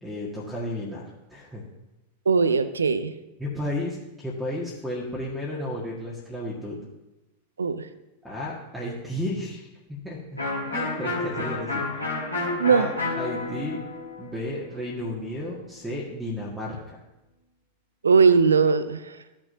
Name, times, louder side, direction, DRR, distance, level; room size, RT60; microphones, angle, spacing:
voice 1, 0.0-1.0 1.3-1.6 3.4-6.8 8.2-9.6 9.9-10.4 10.7-12.0 12.7-12.9 13.2-13.8 14.2-17.0, left 1 dB, 5° right, -5 dB, 1.7 m, -33 dB
voice 2, 2.3-3.1 7.6-7.9 12.6-12.9 18.0-19.0, right 5 dB, 70° right, 13 dB, 0.5 m, -19 dB
Electric guitar, 10.4-16.0, left 3 dB, 85° left, 2.4 m, -31 dB
14.5 x 6.2 x 2.7 m, 0.97 s
figure-of-eight pair, 90°, 0 cm